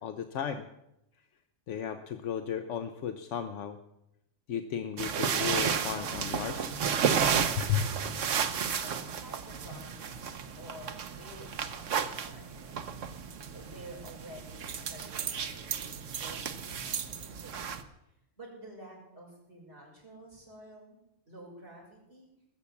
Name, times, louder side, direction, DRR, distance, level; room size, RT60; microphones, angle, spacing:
voice 1, 0.0-0.6 1.7-3.8 4.5-6.7 7.6-7.9, left 8 dB, 75° left, 8 dB, 1.1 m, -34 dB
sound 1, 5.0-17.8, right 7 dB, 80° right, 1.3 m, -33 dB
voice 2, 8.8-12.8 13.5-17.8 18.4-21.0 21.3-22.3, right 1 dB, 55° right, -3 dB, 6.3 m, -50 dB
19.5 x 7.2 x 8.3 m, 0.86 s
omnidirectional pair, 1.3 m